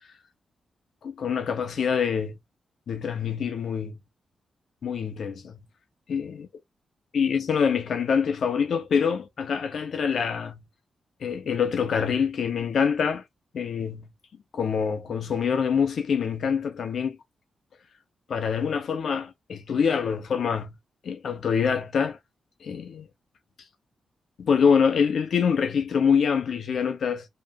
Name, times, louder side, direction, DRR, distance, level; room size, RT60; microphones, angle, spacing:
voice 1, 1.0-2.3 2.9-3.9 4.8-5.6 6.1-6.5 7.1-10.6 11.2-13.2 13.5-14.1 14.5-17.2 18.3-20.7 21.0-22.2 22.6-23.1 24.4-27.3, left 6 dB, 65° left, 1.2 m, -25 dB
5.3 x 3.6 x 2.7 m
cardioid pair, 100°, 0 cm